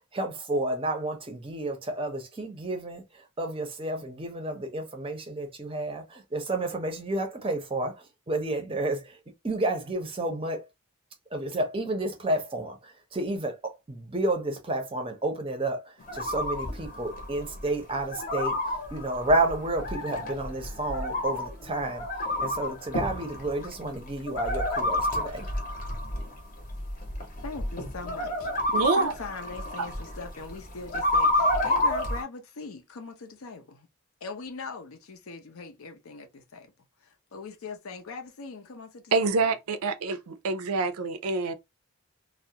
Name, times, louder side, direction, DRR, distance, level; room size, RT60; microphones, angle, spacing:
voice 1, 0.1-9.2 9.4-10.6 11.3-22.1 22.4-25.5, right 2 dB, 25° right, 0.5 m, -31 dB
sound 1, 16.0-32.2, left 1 dB, 40° left, 0.7 m, -30 dB
voice 2, 27.4-33.9 34.2-36.7 37.0-39.4, left 4 dB, 75° left, 0.6 m, -41 dB
voice 3, 28.7-29.1 39.1-41.5, right 4 dB, 90° right, 0.4 m, -26 dB
2.3 x 2.0 x 2.7 m
head